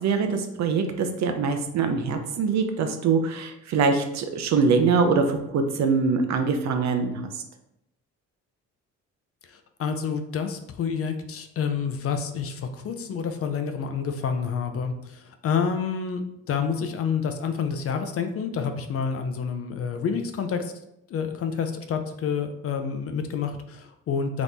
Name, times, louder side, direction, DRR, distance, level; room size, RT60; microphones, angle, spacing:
voice 1, 0.0-7.2, right 5 dB, 65° right, 6 dB, 0.6 m, -23 dB
voice 2, 9.5-16.2 16.5-20.7 21.1-24.4, left 6 dB, 50° left, 7 dB, 0.5 m, -28 dB
2.9 x 2.5 x 3.5 m, 0.82 s
cardioid pair, 90°, 30 cm